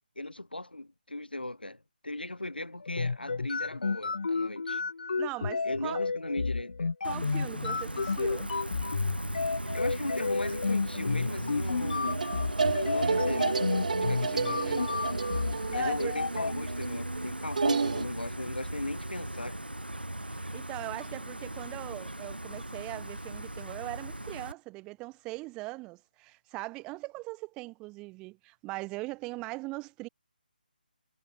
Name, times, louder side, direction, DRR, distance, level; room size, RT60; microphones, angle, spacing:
voice 1, 0.2-4.8 5.6-6.9 9.7-12.5 12.8-13.6 14.1-15.1 15.7-19.6, left 2 dB, 80° left, 2.5 m, -37 dB
sound 1, 2.8-16.5, left 4 dB, 55° left, 2.9 m, -31 dB
voice 2, 5.2-6.0 7.0-8.5 14.1-14.9 15.4-16.1 20.2-30.1, right 22 dB, 15° right, 1.3 m, -40 dB
Gull seagull, 7.0-24.5, right 1 dB, 85° right, 1.5 m, -37 dB
sound 2, 12.1-18.0, right 4 dB, 55° right, 2.2 m, -31 dB
figure-of-eight pair, 150°, 5 cm